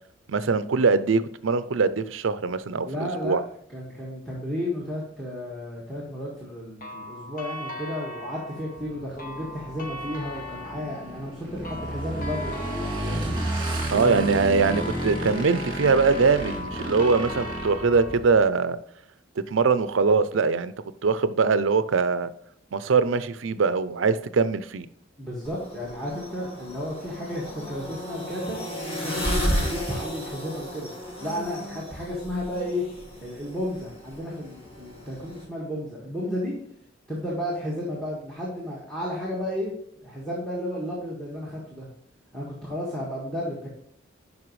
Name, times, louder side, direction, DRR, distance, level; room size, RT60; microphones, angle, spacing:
voice 1, 0.3-3.4 13.9-18.8 19.5-20.7 21.0-22.3 22.7-24.9, right 4 dB, 75° right, 14 dB, 0.5 m, -22 dB
voice 2, 2.8-3.4 3.7-12.6 13.0-13.3 13.9-14.3 25.2-28.6 29.0-30.9 31.2-32.9 33.2-36.5 37.1-39.7 40.0-41.9 42.3-43.7, left 1 dB, ahead, -6 dB, 1.8 m, -33 dB
sound 1, 6.8-18.2, left 1 dB, 45° left, 1.2 m, -39 dB
Motorcycle / Engine, 8.8-18.5, right 1 dB, 25° right, 2.2 m, -32 dB
sound 2, 25.4-35.4, equal, 30° left, 1.6 m, -33 dB
11.0 x 5.3 x 3.2 m, 0.72 s
head